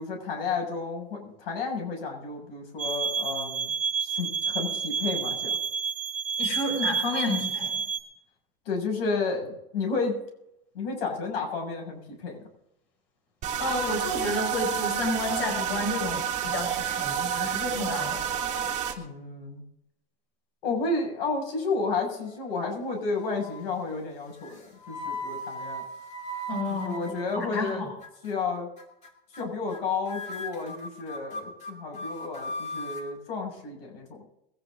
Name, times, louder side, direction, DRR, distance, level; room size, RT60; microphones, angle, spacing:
voice 1, 0.0-3.7 4.0-5.6 8.7-10.2 10.7-12.4 19.0-19.6 20.6-25.8 26.7-27.9 28.2-28.7 29.3-34.2, left 4 dB, 70° left, 2 dB, 7.0 m, -32 dB
sound 1, 2.8-8.0, right 6 dB, 5° right, 4.2 m, -30 dB
voice 2, 6.4-7.7 13.6-18.2 26.5-27.9, left 2 dB, 45° left, 1 dB, 6.7 m, -31 dB
sound 2, 13.4-18.9, right 9 dB, 25° right, 2.6 m, -29 dB
sound 3, 22.2-22.8 23.1-23.6 24.4-27.7 28.0-28.4 28.8-29.1 29.3-29.8 30.1-33.1, equal, 25° left, 2.8 m, -38 dB
22.5 x 10.5 x 3.9 m, 0.80 s
supercardioid pair, 155°, 30 cm